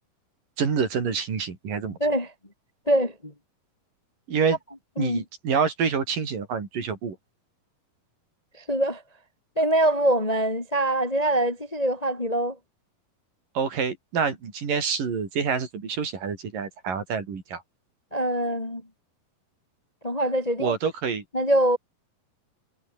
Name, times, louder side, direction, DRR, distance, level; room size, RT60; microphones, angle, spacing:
voice 1, 0.6-2.0 4.3-4.6 5.0-7.2 13.6-17.6 20.6-21.2, right 6 dB, 65° right, 5.6 m, -27 dB
voice 2, 2.0-2.3 2.9-3.3 5.0-5.2 8.7-9.0 9.6-12.6 18.1-18.8 20.0-20.8 21.3-21.8, right 1 dB, 15° left, 2.0 m, -23 dB
omnidirectional pair, 4.2 m